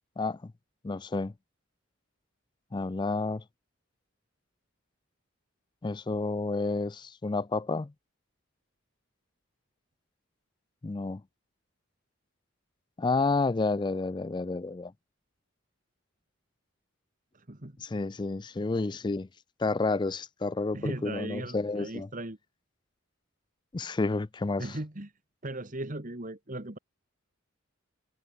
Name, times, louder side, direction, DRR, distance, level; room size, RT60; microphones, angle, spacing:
voice 1, 0.2-0.5 0.8-1.3 2.7-3.4 5.8-7.9 10.8-11.2 13.0-14.9 17.8-19.3 19.6-22.1 23.7-24.8, left 3 dB, 20° left, 0.4 m, -30 dB
voice 2, 17.3-17.7 20.7-22.4 24.6-25.1 25.4-26.8, right 1 dB, 40° right, 1.9 m, -37 dB
head